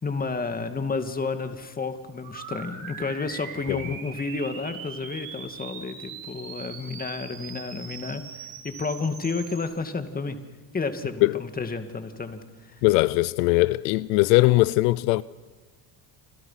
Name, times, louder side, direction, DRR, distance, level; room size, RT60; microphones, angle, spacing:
voice 1, 0.0-10.4 10.7-12.7, left 4 dB, 20° left, 2.3 m, -31 dB
sound 1, 2.2-9.6, right 6 dB, 45° right, 6.4 m, -41 dB
voice 2, 12.8-15.2, left 21 dB, 80° left, 0.8 m, -20 dB
29.0 x 28.0 x 5.9 m
cardioid pair, 125°, 48 cm